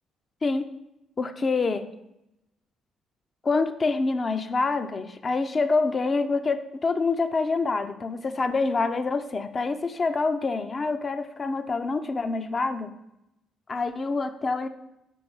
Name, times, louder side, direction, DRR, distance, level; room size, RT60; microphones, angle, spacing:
voice 1, 1.2-1.9 3.4-12.9 13.7-14.7, left 3 dB, 40° left, 9 dB, 0.5 m, -26 dB
5.2 x 4.6 x 5.5 m, 0.87 s
supercardioid pair, 60°, 0 cm